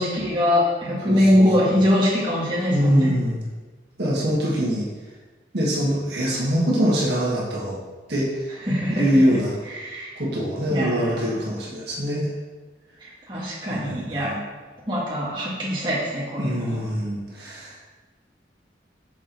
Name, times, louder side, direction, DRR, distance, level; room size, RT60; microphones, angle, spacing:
voice 1, 0.0-3.1 8.7-9.0 9.8-10.1 10.7-11.2 13.3-14.3 14.9-16.8, left 1 dB, 25° right, -7 dB, 1.5 m, -22 dB
voice 2, 1.0-1.7 2.7-3.4 4.0-4.9 5.5-7.8 8.1-8.5 8.9-9.6 10.1-12.3 13.7-14.4 16.4-17.8, equal, 75° right, -5 dB, 1.5 m, -23 dB
6.2 x 4.5 x 4.0 m, 1.3 s
head